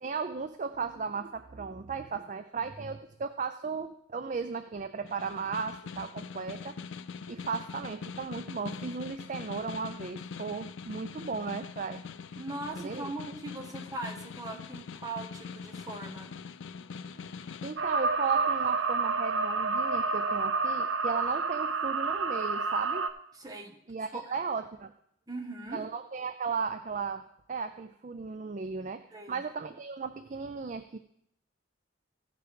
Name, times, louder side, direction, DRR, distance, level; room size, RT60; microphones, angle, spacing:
voice 1, 0.0-6.8 7.3-12.0 12.7-13.0 17.1-17.2 17.6-23.1 23.9-24.9 25.7-31.0, right 5 dB, 40° right, 9 dB, 0.4 m, -36 dB
Snare drum, 5.0-17.8, left 5 dB, 75° left, 0.4 m, -43 dB
voice 2, 12.4-16.4 23.3-23.8 24.1-24.3 25.3-25.8 29.1-29.4, right 2 dB, 20° right, 3 dB, 1.1 m, -40 dB
sound 1, 17.8-23.1, right 4 dB, 80° right, 0.7 m, -29 dB
15.0 x 5.1 x 4.8 m, 0.73 s
head